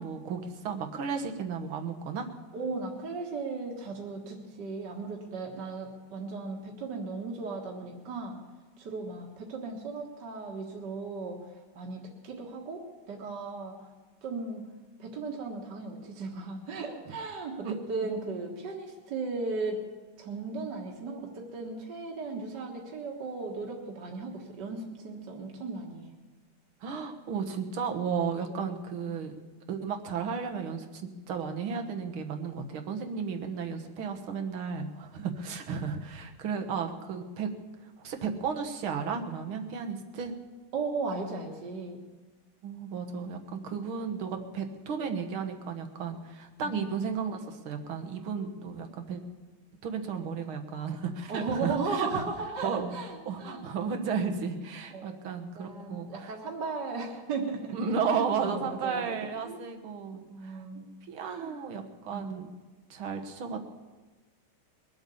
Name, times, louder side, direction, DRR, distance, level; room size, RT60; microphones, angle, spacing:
voice 1, 0.0-2.3 17.6-17.8 26.8-29.4 29.7-31.0 31.3-37.5 38.0-40.3 42.6-49.2 49.8-52.2 52.6-52.9 53.3-56.3 57.7-60.6 61.1-62.5 62.9-63.6, right 6 dB, 80° right, 5 dB, 2.2 m, -34 dB
voice 2, 2.5-8.4 8.8-11.5 11.7-13.9 14.2-14.6 15.0-19.8 20.2-26.1 35.2-35.3 40.7-42.0 46.6-46.8 51.3-53.6 54.9-57.7 58.1-59.2 59.4-59.6 60.3-60.8 61.2-61.6 62.1-62.4, right 4 dB, 60° right, 0 dB, 2.1 m, -36 dB
22.0 x 8.0 x 7.0 m, 1.2 s
omnidirectional pair, 2.2 m